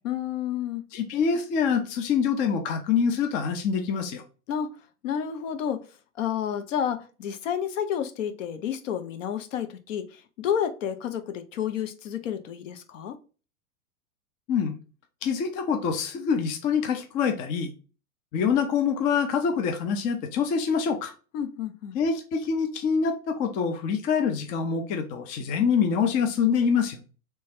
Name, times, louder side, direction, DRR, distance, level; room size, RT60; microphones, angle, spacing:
voice 1, 0.0-0.8 4.5-4.8 5.0-5.8 6.2-13.2 21.3-22.0, left 9 dB, 55° left, 0.8 m, -30 dB
voice 2, 0.9-4.2 14.5-14.8 15.2-17.7 18.3-21.1 21.9-27.0, left 6 dB, 20° left, 0.4 m, -25 dB
3.4 x 3.1 x 4.2 m
hypercardioid pair, 100°, 45 cm